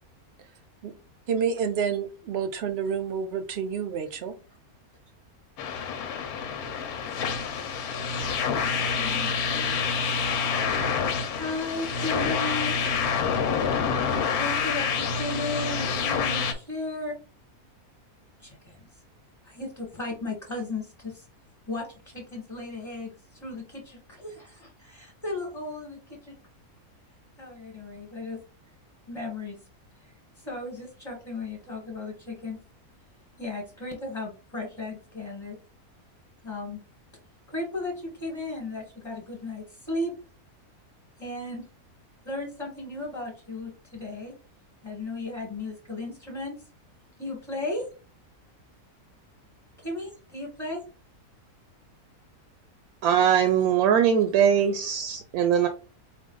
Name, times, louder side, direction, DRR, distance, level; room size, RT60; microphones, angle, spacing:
voice 1, 1.3-4.4, right 6 dB, 60° right, 9 dB, 0.7 m, -29 dB
sound 1, 5.6-16.5, left 6 dB, 85° left, 1.2 m, -27 dB
voice 2, 8.7-9.8 11.3-12.8 14.4-17.2 18.4-18.8 19.4-21.2 21.7-21.8 22.1-26.3 27.4-28.4 29.1-29.6 30.4-32.6 33.4-35.5 36.4-36.8 37.5-40.1 41.2-41.6 42.2-44.3 44.8-46.6 47.2-47.8 49.8-50.8, left 2 dB, 20° left, -1 dB, 1.2 m, -35 dB
voice 3, 53.0-55.7, right 8 dB, 80° right, 8 dB, 1.1 m, -21 dB
4.6 x 2.3 x 3.8 m, 0.34 s
omnidirectional pair, 1.6 m